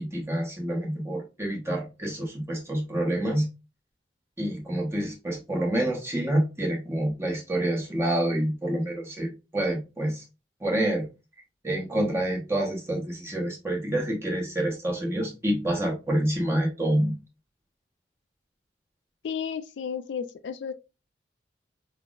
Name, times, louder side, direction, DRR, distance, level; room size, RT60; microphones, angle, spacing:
voice 1, 0.0-3.5 4.4-10.2 10.6-11.1 11.6-17.1, right 1 dB, 15° right, 0.9 m, -27 dB
voice 2, 19.2-20.7, left 7 dB, 80° left, 0.4 m, -33 dB
5.6 x 2.0 x 2.3 m
head